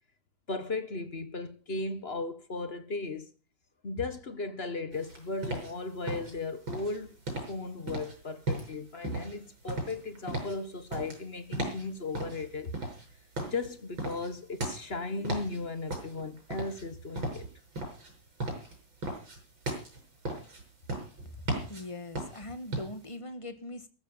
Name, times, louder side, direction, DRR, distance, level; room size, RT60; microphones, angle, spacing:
voice 1, 0.5-3.3 3.8-7.2 7.5-12.8 13.5-17.5, left 3 dB, 35° left, 1.4 m, -36 dB
sound 1, 4.9-23.1, right 2 dB, 85° right, 7.1 m, -37 dB
voice 2, 21.4-23.9, left 1 dB, 20° left, 1.2 m, -41 dB
15.0 x 14.0 x 5.6 m
omnidirectional pair, 2.1 m